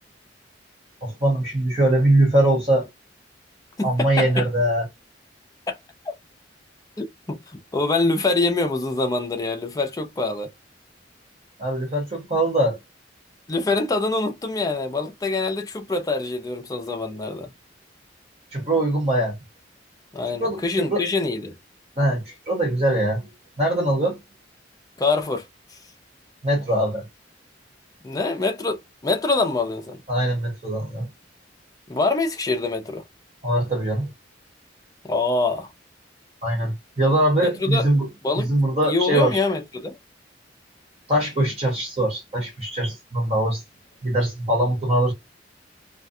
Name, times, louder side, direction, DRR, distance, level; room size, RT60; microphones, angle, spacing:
voice 1, 1.0-2.9 3.8-4.9 11.6-12.8 18.5-19.4 20.4-21.0 22.0-23.3 23.6-24.2 26.4-27.1 30.1-31.1 33.4-34.1 36.4-38.1 38.4-39.4 41.1-43.6 44.0-45.1, right 1 dB, 35° right, 1.0 m, -22 dB
voice 2, 3.8-4.5 5.7-5.8 6.1-6.2 7.0-10.5 13.5-17.5 20.1-21.6 25.0-25.5 28.0-30.0 31.9-33.0 35.1-35.7 37.4-37.9 38.2-38.5 38.8-40.0, left 3 dB, 20° left, 0.5 m, -25 dB
2.4 x 2.2 x 2.6 m
head